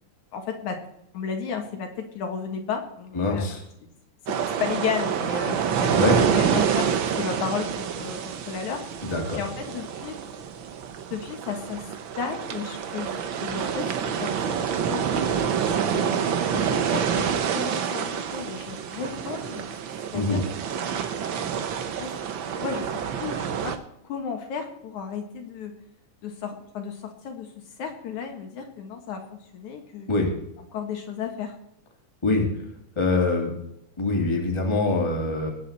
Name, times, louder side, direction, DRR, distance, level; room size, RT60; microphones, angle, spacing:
voice 1, 0.3-0.8 1.1-3.5 3.8-3.9 4.3-8.8 9.3-10.2 11.1-11.9 12.2-14.6 14.8-15.4 15.9-19.7 20.1-20.5 20.7-21.5 22.0-22.1 22.6-22.9 23.2-23.8 24.0-25.8 26.2-30.1 30.7-31.6, left 6 dB, 70° left, 3 dB, 3.0 m, -33 dB
voice 2, 3.1-3.6 5.9-6.2 9.0-9.4 20.1-20.4 30.1-30.3 32.2-32.5 33.0-33.5 34.0-35.5, left 3 dB, 10° left, 1 dB, 2.0 m, -24 dB
sound 1, 4.3-23.8, right 7 dB, 80° right, 1.1 m, -27 dB
19.0 x 9.6 x 4.3 m, 0.78 s
omnidirectional pair, 3.6 m